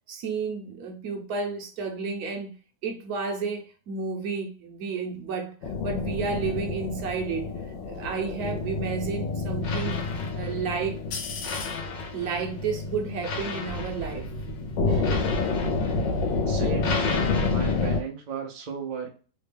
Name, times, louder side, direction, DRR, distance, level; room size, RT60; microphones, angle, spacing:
voice 1, 0.1-2.5 2.8-5.5 5.8-11.0 12.1-14.3 14.9-15.2, right 5 dB, 65° right, 1.1 m, -32 dB
sound 1, 5.6-18.0, left 3 dB, 85° left, 1.4 m, -28 dB
voice 2, 16.5-19.1, right 5 dB, 90° right, 0.4 m, -35 dB
3.3 x 2.2 x 3.3 m
omnidirectional pair, 2.0 m